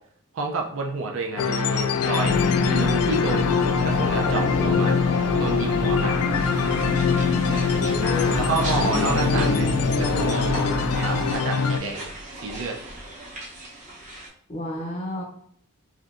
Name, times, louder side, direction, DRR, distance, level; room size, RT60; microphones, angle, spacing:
voice 1, 0.3-3.5 3.8-5.0 5.4-6.2 8.3-9.7 10.0-12.1 12.3-12.8, right 4 dB, 65° right, 1 dB, 0.4 m, -30 dB
sound 1, 1.4-11.8, left 5 dB, 85° left, 0.3 m, -23 dB
sound 2, 2.2-11.4, right 1 dB, 85° right, 0.8 m, -30 dB
sound 3, 5.4-14.3, right 1 dB, 35° right, 0.7 m, -39 dB
voice 2, 7.8-9.9 14.5-15.2, left 1 dB, 25° left, -2 dB, 0.5 m, -32 dB
3.3 x 2.7 x 2.4 m, 0.62 s
head